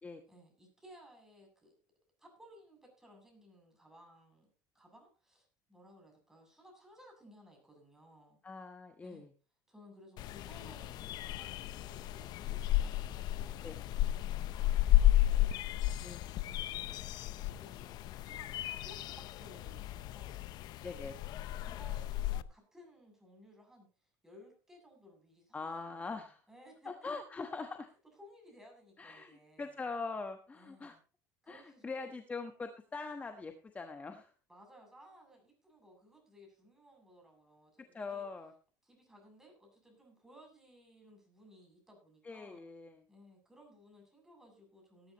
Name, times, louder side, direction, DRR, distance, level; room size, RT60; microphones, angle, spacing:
voice 1, 0.3-1.8 2.2-4.5 4.7-8.4 9.0-9.3 9.7-15.6 16.4-17.2 17.5-18.5 18.8-20.5 21.3-26.9 28.2-29.8 30.5-31.0 31.4-32.1 34.5-38.3 38.8-42.6 43.1-45.1, equal, 5° right, 1 dB, 7.8 m, -59 dB
voice 2, 8.4-9.3 12.7-12.8 13.6-13.8 16.0-16.3 20.8-21.2 25.5-26.4 26.8-27.9 29.0-31.0 31.5-34.3 37.9-38.5 42.2-43.0, left 4 dB, 20° left, 6 dB, 1.2 m, -43 dB
sound 1, 10.2-22.4, left 14 dB, 60° left, 0.7 m, -33 dB
19.0 x 11.0 x 3.0 m, 0.36 s
cardioid pair, 120°, 8 cm